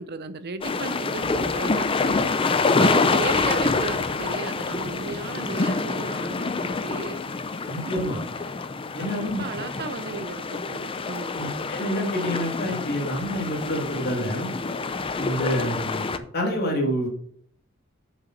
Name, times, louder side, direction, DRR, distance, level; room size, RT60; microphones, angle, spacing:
voice 1, 0.0-2.3 2.8-7.2 9.0-11.4, right 4 dB, 50° right, 0.6 m, -34 dB
sound 1, 0.6-16.2, left 4 dB, 25° left, 0.5 m, -26 dB
voice 2, 7.7-8.2 8.9-9.5 11.3-14.5 15.1-16.1 16.3-17.1, equal, 50° left, 2.4 m, -27 dB
6.6 x 5.8 x 5.8 m
head